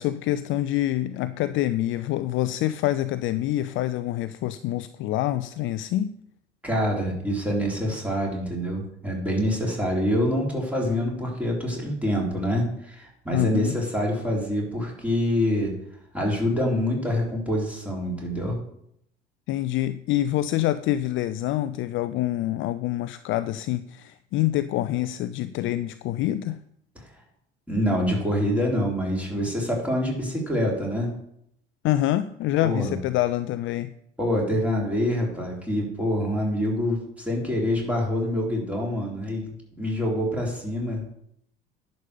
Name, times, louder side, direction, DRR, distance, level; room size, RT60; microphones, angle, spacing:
voice 1, 0.0-6.1 13.3-13.8 19.5-26.6 31.8-33.9, left 14 dB, 45° left, 13 dB, 0.5 m, -26 dB
voice 2, 6.6-15.7 16.1-18.6 27.7-31.1 32.6-33.0 34.2-41.1, equal, 5° right, -2 dB, 3.9 m, -26 dB
11.0 x 5.4 x 6.7 m, 0.72 s
figure-of-eight pair, 65°, 29 cm